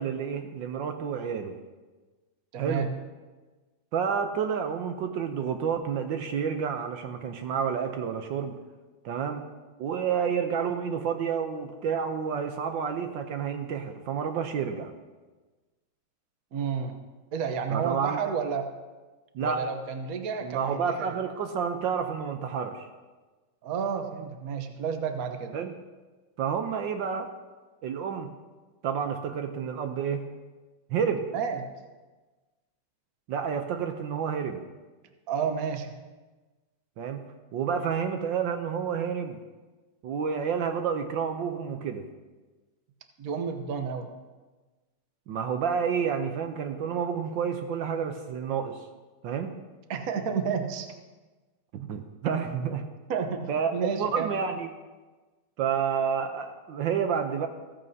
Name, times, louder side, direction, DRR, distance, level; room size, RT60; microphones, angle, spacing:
voice 1, 0.0-1.6 2.6-2.9 3.9-8.5 9.0-9.4 9.8-14.9 17.7-18.2 19.3-19.7 20.4-22.9 25.5-25.7 26.4-27.3 27.8-28.3 28.8-30.2 30.9-31.3 33.3-34.6 37.0-37.2 37.5-39.4 40.0-42.1 45.3-48.8 49.2-49.5 51.7-52.8 53.5-54.7 55.6-57.5, right 7 dB, 70° right, 6 dB, 1.4 m, -29 dB
voice 2, 2.5-2.9 16.5-17.0 17.3-18.7 19.4-21.1 23.6-25.5 31.3-31.7 35.3-35.9 43.2-44.1 49.9-50.9 53.1-54.3, right 6 dB, 55° right, 6 dB, 1.2 m, -31 dB
15.5 x 14.5 x 2.8 m, 1.3 s
omnidirectional pair, 2.2 m